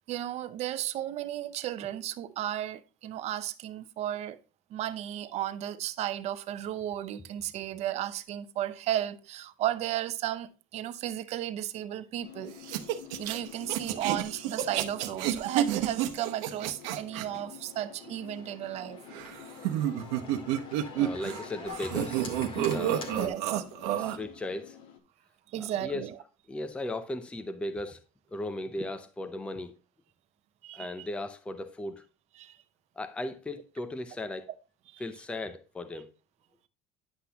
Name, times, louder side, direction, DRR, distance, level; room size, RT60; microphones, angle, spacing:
voice 1, 0.1-4.4 4.7-12.8 13.2-19.0 23.1-23.6 25.5-26.2 30.6-31.1 32.4-32.6 34.9-35.0, right 12 dB, 45° right, 0.7 m, -34 dB
sound 1, 12.2-25.0, left 9 dB, 65° left, 1.5 m, -50 dB
sound 2, 12.6-17.3 19.1-21.4 21.7-24.2, right 11 dB, 80° right, 1.0 m, -30 dB
Organ, 17.5-23.3, left 2 dB, 35° left, 1.9 m, -43 dB
voice 2, 20.9-22.4 22.7-23.1 24.0-24.8 25.5-26.0 26.5-28.0 28.3-29.7 30.7-32.0 33.0-34.5 35.0-36.1, left 2 dB, 5° left, 0.6 m, -37 dB
9.9 x 5.9 x 2.8 m
cardioid pair, 145°, 16 cm